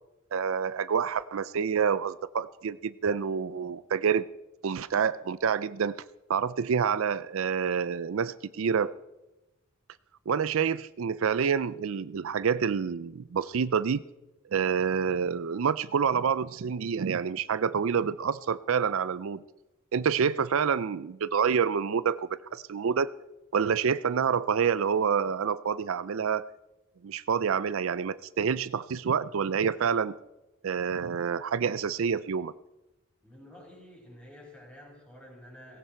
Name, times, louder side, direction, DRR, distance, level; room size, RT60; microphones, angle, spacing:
voice 1, 0.3-4.3 4.6-6.0 6.3-8.9 10.3-14.0 14.5-19.4 19.9-23.1 23.5-26.5 27.0-30.2 30.6-32.5, right 6 dB, 65° right, 16 dB, 0.4 m, -27 dB
voice 2, 33.2-35.8, left 1 dB, 5° left, -2 dB, 5.4 m, -50 dB
17.5 x 17.0 x 4.5 m, 0.99 s
head